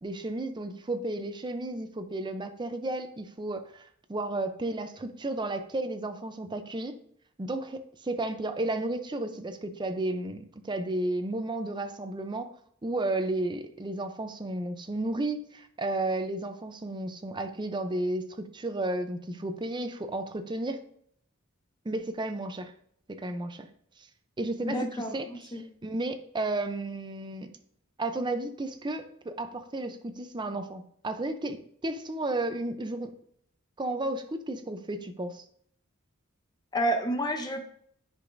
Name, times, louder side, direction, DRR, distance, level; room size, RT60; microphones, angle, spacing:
voice 1, 0.0-7.0 7.4-12.5 12.8-20.8 21.8-22.7 23.1-23.7 24.4-25.5 25.8-27.5 28.0-33.1 33.8-35.4, right 2 dB, 20° right, 8 dB, 0.6 m, -33 dB
voice 2, 24.6-25.6 36.7-37.6, right 1 dB, 20° left, 4 dB, 0.7 m, -30 dB
10.0 x 4.9 x 2.6 m, 0.64 s
head